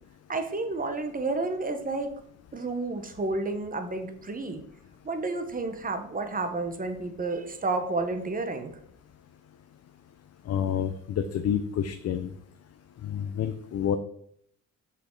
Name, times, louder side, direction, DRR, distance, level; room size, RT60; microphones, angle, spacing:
voice 1, 0.3-2.1 2.5-4.6 5.0-8.7, right 3 dB, 30° right, 7 dB, 1.2 m, -31 dB
voice 2, 10.5-12.3 13.0-14.0, left 9 dB, 55° left, 9 dB, 0.6 m, -28 dB
6.6 x 5.3 x 3.8 m, 0.68 s
cardioid pair, 90°, 30 cm